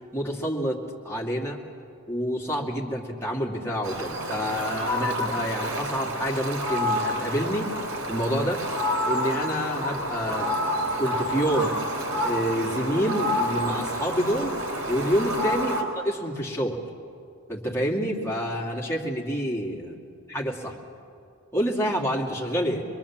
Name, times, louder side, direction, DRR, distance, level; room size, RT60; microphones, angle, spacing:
voice 1, 0.1-1.6 2.1-7.7 8.1-8.6 9.0-10.6 11.0-11.7 12.2-14.6 14.9-16.8 17.5-19.9 20.3-20.8 21.5-22.8, equal, 15° left, -2 dB, 2.5 m, -28 dB
Fowl, 3.8-15.8, equal, 85° right, 3.5 m, -28 dB
25.0 x 22.0 x 7.4 m, 2.5 s
head